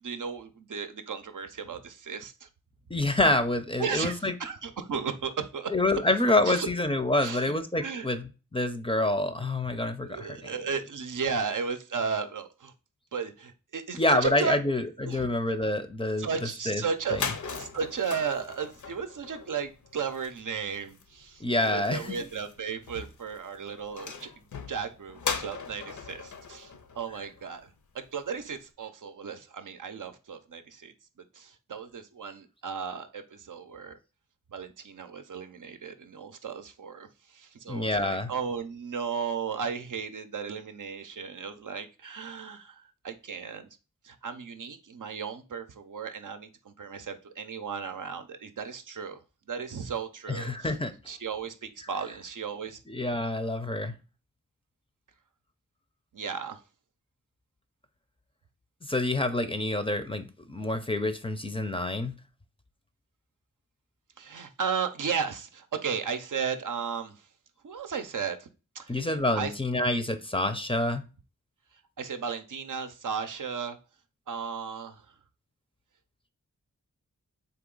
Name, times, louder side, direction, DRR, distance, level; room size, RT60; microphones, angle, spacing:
voice 1, 0.0-2.5 3.8-5.7 6.5-6.7 7.2-7.5 7.8-8.1 10.0-12.7 13.1-14.6 15.0-15.3 16.2-24.3 24.7-27.7 27.9-30.9 31.3-34.0 34.5-43.7 44.0-49.2 49.5-50.8 51.1-52.8 56.1-56.6 64.2-67.1 67.6-68.5 68.7-69.0 69.3-69.5 72.0-73.8 74.3-75.0, right 6 dB, 75° right, 8 dB, 0.6 m, -35 dB
voice 2, 2.9-4.3 5.7-10.5 14.0-16.3 16.7-16.8 17.1-17.2 21.4-22.2 37.7-38.3 50.3-50.9 52.9-54.0 58.8-62.2 68.9-71.0, left 1 dB, 15° left, 8 dB, 0.5 m, -27 dB
sound 1, 16.7-16.8 17.0-27.8, left 5 dB, 65° left, 0.6 m, -39 dB
3.9 x 2.9 x 3.8 m, 0.32 s
wide cardioid pair, 60°, 32 cm